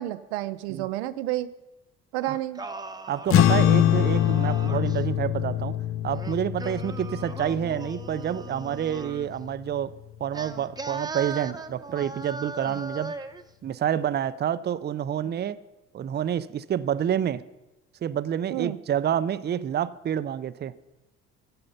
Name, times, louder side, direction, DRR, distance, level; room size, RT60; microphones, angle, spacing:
voice 1, 0.0-1.5 2.1-2.6 12.6-12.8 18.5-18.8, right 15 dB, 80° right, 12 dB, 0.6 m, -30 dB
Singing, 2.2-5.0 6.1-9.3 10.3-13.4, right 3 dB, 10° right, 0.9 m, -39 dB
voice 2, 3.1-5.8 6.0-9.9 10.2-13.1 13.6-15.6 15.9-17.4 18.0-20.7, right 9 dB, 30° right, 15 dB, 0.6 m, -28 dB
sound 1, 3.3-9.9, left 11 dB, 40° left, 0.6 m, -24 dB
13.5 x 7.8 x 5.6 m, 1.0 s
hypercardioid pair, 65°, 33 cm